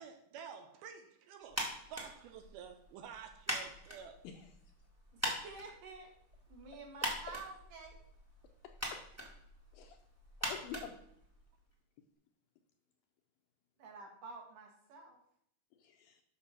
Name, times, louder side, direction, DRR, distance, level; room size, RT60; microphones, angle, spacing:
voice 1, 0.0-1.6 1.9-4.2, right 7 dB, 75° right, 7 dB, 2.4 m, -50 dB
sound 1, 1.5-11.7, equal, 10° right, 0.7 m, -43 dB
voice 2, 5.1-6.1 6.5-8.0 13.8-15.2, right 4 dB, 60° right, 1 dB, 2.7 m, -50 dB
voice 3, 8.6-9.1 9.7-10.0 10.4-11.0 15.8-16.2, left 8 dB, 75° left, 4 dB, 2.3 m, -48 dB
8.6 x 6.5 x 5.8 m, 0.71 s
omnidirectional pair, 4.7 m